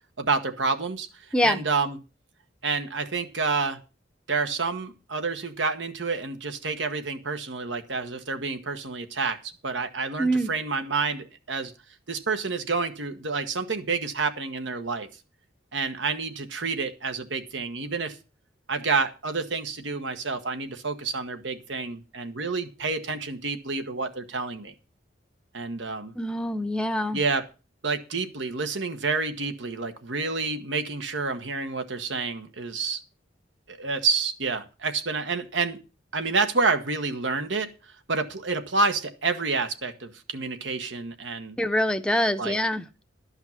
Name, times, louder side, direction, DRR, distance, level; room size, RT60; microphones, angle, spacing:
voice 1, 0.2-1.1 1.4-2.0 2.6-3.8 4.3-11.7 12.1-15.1 15.7-18.2 18.7-24.7 25.5-26.1 27.1-27.5 27.8-33.0 33.7-35.8 36.1-37.7 38.1-41.6 42.4-42.6, right 4 dB, 75° right, 1.4 m, -29 dB
voice 2, 10.2-10.5 26.2-27.2 41.6-42.8, equal, 5° left, 0.7 m, -24 dB
12.0 x 5.7 x 7.2 m
head